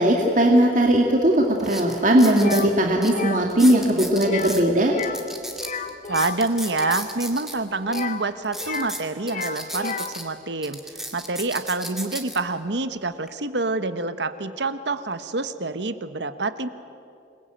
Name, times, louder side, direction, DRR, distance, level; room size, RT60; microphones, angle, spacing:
voice 1, 0.0-4.9, right 1 dB, 45° right, 1 dB, 2.1 m, -18 dB
sound 1, 0.9-1.0 1.6-2.7 3.0-3.1 3.5-4.6 5.0-7.6 7.9-8.0 8.4-10.2 10.6-12.4 13.0-13.3, equal, ahead, 2.3 m, -34 dB
sound 2, 2.4-2.7 3.1-3.4 4.2-4.6 4.9-5.3 5.5-7.1 7.8-9.0 9.2-10.2, left 4 dB, 45° left, 1.1 m, -32 dB
voice 2, 6.1-10.8 11.1-16.7, right 3 dB, 75° right, 11 dB, 1.3 m, -27 dB
27.5 x 21.5 x 9.1 m, 2.6 s
head